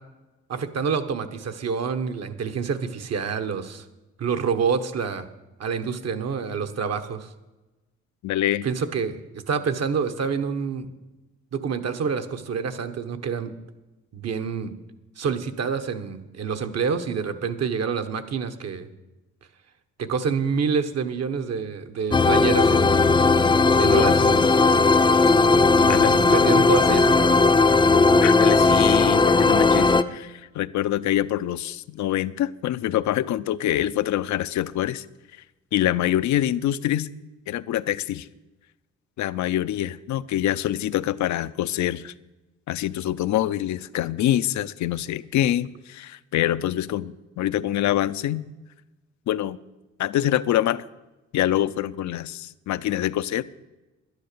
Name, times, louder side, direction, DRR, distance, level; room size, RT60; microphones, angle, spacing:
voice 1, 0.5-3.8 4.2-5.3 5.6-7.3 8.6-10.9 11.5-13.5 14.1-14.7 15.2-18.9 20.0-23.0 23.8-24.5 25.8-27.6, right 6 dB, 55° right, 8 dB, 1.2 m, -27 dB
voice 2, 8.2-8.7 23.9-24.1 25.9-26.2 28.2-35.1 35.7-37.1 37.5-38.3 39.2-42.1 42.7-48.4 49.3-49.6 50.0-50.8 51.3-53.4, left 12 dB, 70° left, 15 dB, 0.6 m, -25 dB
sound 1, 22.1-30.0, left 3 dB, 15° left, 0.5 m, -17 dB
11.5 x 9.9 x 6.8 m, 1.1 s
cardioid pair, 90°, 30 cm